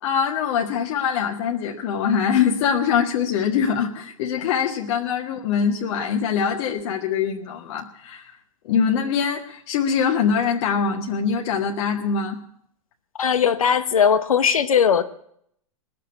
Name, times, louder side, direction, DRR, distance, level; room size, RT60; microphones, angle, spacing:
voice 1, 0.0-8.3 8.6-12.4, left 7 dB, 55° left, 1 dB, 1.7 m, -23 dB
voice 2, 13.2-15.0, left 7 dB, 85° left, 10 dB, 1.1 m, -18 dB
20.0 x 6.9 x 9.7 m, 0.70 s
hypercardioid pair, 120°, 17 cm